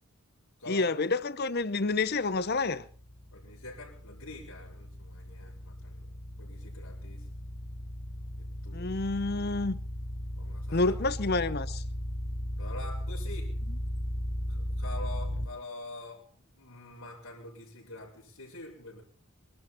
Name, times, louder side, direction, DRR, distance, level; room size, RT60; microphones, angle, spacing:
voice 1, 0.7-2.9 8.7-9.8 10.7-11.8, left 3 dB, 45° left, 0.7 m, -29 dB
sound 1, 2.2-15.5, equal, 60° left, 4.0 m, -36 dB
voice 2, 3.3-7.3 8.3-8.9 10.4-10.9 12.6-13.6 14.4-16.3 16.5-19.0, left 2 dB, 85° left, 5.8 m, -45 dB
23.5 x 12.5 x 4.4 m
head